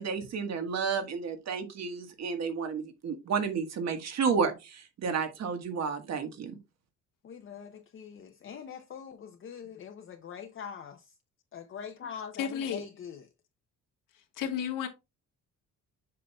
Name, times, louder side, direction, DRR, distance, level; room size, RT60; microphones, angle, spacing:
voice 1, 0.0-6.5, right 5 dB, 55° right, 1.4 m, -31 dB
voice 2, 7.2-11.1 11.5-13.3, left 7 dB, 40° left, 0.6 m, -43 dB
voice 3, 12.4-12.8 14.4-14.9, left 8 dB, 85° left, 1.4 m, -32 dB
7.5 x 5.6 x 2.2 m
cardioid pair, 145°, 32 cm